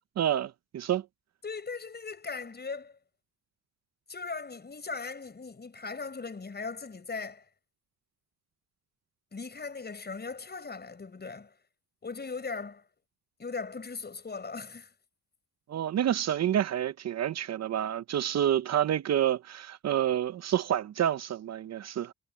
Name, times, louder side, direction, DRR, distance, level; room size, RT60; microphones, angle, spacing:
voice 1, 0.2-1.1 15.7-22.1, right 10 dB, 60° right, 0.7 m, -28 dB
voice 2, 1.4-3.0 4.1-7.5 9.3-11.6 12.0-12.8 13.4-14.9, left 4 dB, 35° left, 5.5 m, -39 dB
cardioid pair, 75°, 29 cm